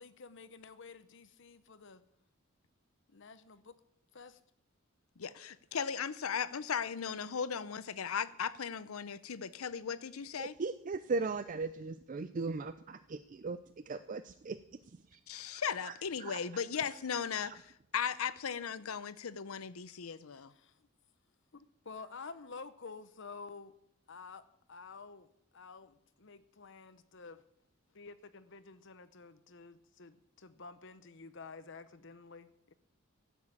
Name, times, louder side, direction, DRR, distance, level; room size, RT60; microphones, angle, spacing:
voice 1, 0.0-2.0 3.1-3.8 4.1-4.4 20.3-20.9 21.5-23.7 24.1-24.4 24.7-27.4 27.9-32.7, left 4 dB, 60° left, 0.9 m, -50 dB
voice 2, 5.2-10.5 15.3-20.5, left 7 dB, 85° left, 0.7 m, -37 dB
voice 3, 10.4-13.6 13.9-14.6 15.1-15.9 16.2-16.4 17.4-17.5, right 4 dB, 40° right, 0.4 m, -38 dB
12.5 x 7.4 x 8.6 m
head